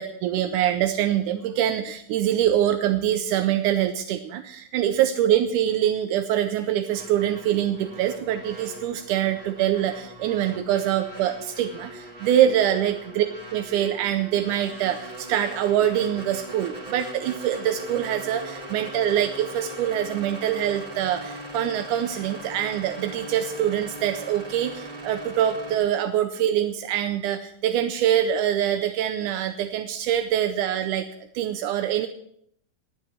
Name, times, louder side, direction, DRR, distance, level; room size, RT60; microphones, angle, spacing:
voice 1, 0.2-13.2 13.5-31.1 31.3-32.1, right 11 dB, 80° right, 7 dB, 1.9 m, -24 dB
sound 1, 6.9-25.8, right 1 dB, 25° right, 2.3 m, -40 dB
20.5 x 7.4 x 4.5 m, 0.68 s
omnidirectional pair, 4.1 m